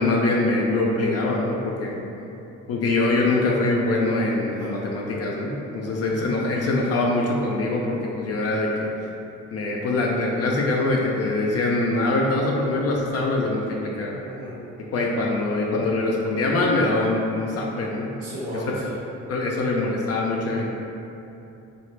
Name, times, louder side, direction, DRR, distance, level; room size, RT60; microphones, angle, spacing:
voice 1, 0.0-2.0 2.7-8.9 9.5-14.2 14.9-18.1 18.6-18.7 19.3-20.7, left 2 dB, 55° left, -2 dB, 0.4 m, -23 dB
voice 2, 18.2-18.9, equal, 90° right, -8 dB, 1.1 m, -35 dB
3.1 x 2.4 x 3.1 m, 2.8 s
cardioid pair, 90°, 30 cm